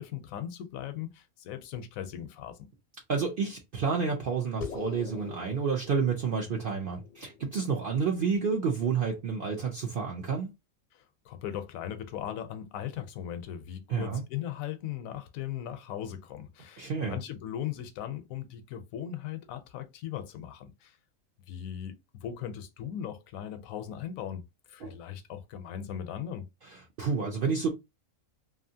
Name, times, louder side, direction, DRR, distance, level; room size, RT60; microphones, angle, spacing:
voice 1, 0.0-2.6 10.9-21.0 21.5-24.4 24.7-26.5, left 10 dB, 85° left, 1.0 m, -38 dB
voice 2, 3.1-10.5 13.9-14.2 16.8-17.2 24.8-24.9 27.0-27.7, right 5 dB, 60° right, 0.6 m, -29 dB
sound 1, 4.6-9.4, left 4 dB, 50° left, 0.6 m, -45 dB
2.7 x 2.4 x 2.7 m
omnidirectional pair, 1.4 m